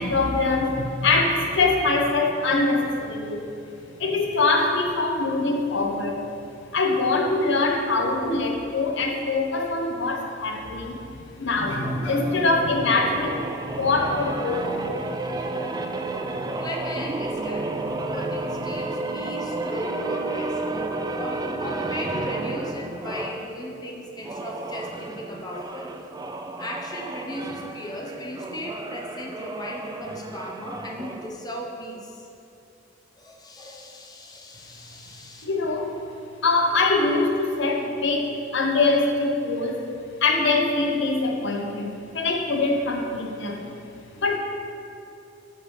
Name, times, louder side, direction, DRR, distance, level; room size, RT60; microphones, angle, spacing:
voice 1, 0.0-3.5 4.0-6.2 6.7-14.9 35.4-35.9 36.4-39.9 40.2-43.7 44.2-44.4, left 3 dB, 60° left, 2 dB, 0.8 m, -23 dB
sound 1, 11.8-23.5 24.2-31.3, right 2 dB, 20° right, 0.3 m, -32 dB
voice 2, 16.6-25.9 26.6-32.3 33.2-35.4, left 1 dB, 20° left, -1 dB, 0.7 m, -37 dB
10.5 x 6.6 x 3.2 m, 2.7 s
head